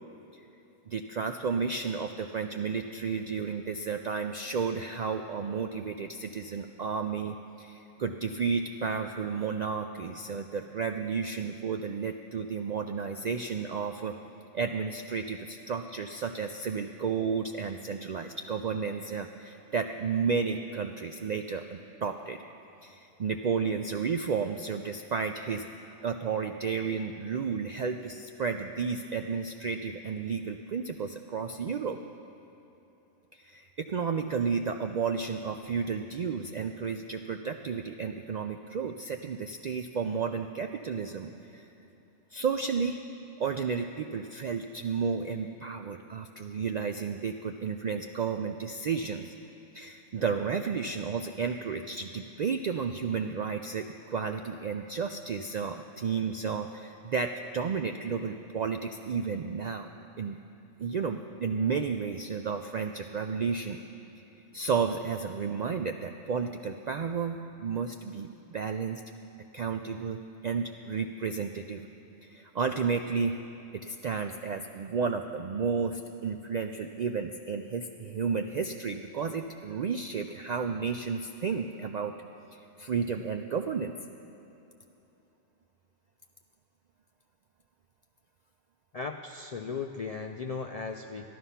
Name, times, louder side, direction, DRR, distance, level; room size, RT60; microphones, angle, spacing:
voice 1, 0.9-14.2 14.5-22.4 22.8-25.7 26.0-32.0 33.3-41.7 42.3-43.0 43.4-49.3 49.7-59.9 60.2-60.4 60.8-63.8 64.5-69.0 69.5-71.8 72.2-73.4 73.7-82.1 82.5-84.0, right 5 dB, 65° right, 6 dB, 0.4 m, -32 dB
voice 2, 88.9-91.3, left 4 dB, 60° left, 4 dB, 0.4 m, -36 dB
14.5 x 11.0 x 5.6 m, 3.0 s
omnidirectional pair, 1.2 m